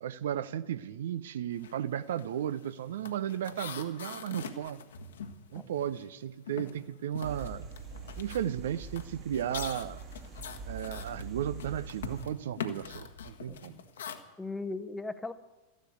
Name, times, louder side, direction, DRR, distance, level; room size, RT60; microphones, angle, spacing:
voice 1, 0.0-4.8 5.5-7.7 8.2-10.0 10.7-13.8, right 10 dB, 60° right, 16 dB, 0.5 m, -35 dB
sound 1, 1.5-1.8 2.1-6.2 6.5-14.2, left 7 dB, 65° left, 1.4 m, -43 dB
sound 2, 7.2-12.2, right 4 dB, 30° right, 1.9 m, -44 dB
voice 2, 13.5-13.8 14.4-15.3, left 3 dB, 10° left, 12 dB, 0.9 m, -38 dB
14.0 x 11.5 x 8.2 m, 1.1 s
figure-of-eight pair, 90°, 0 cm